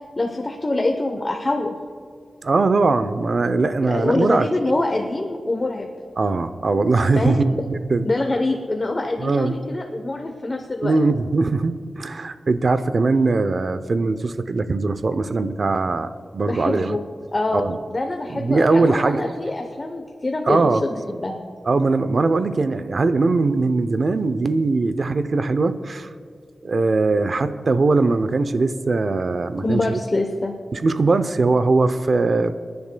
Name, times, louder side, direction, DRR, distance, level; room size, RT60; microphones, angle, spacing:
voice 1, 0.2-1.7 3.8-5.9 7.2-7.4 8.0-11.0 16.5-17.0 17.3-21.4 29.6-30.5, left 2 dB, 30° left, 3 dB, 0.8 m, -25 dB
voice 2, 2.4-4.5 6.2-8.1 9.2-9.6 10.8-17.0 17.5-17.8 18.3-19.2 20.5-20.8 21.7-26.1 26.6-30.0 30.7-32.5, right 3 dB, 50° right, 11 dB, 0.6 m, -20 dB
26.5 x 10.5 x 2.2 m, 2.2 s
wide cardioid pair, 120°, 0 cm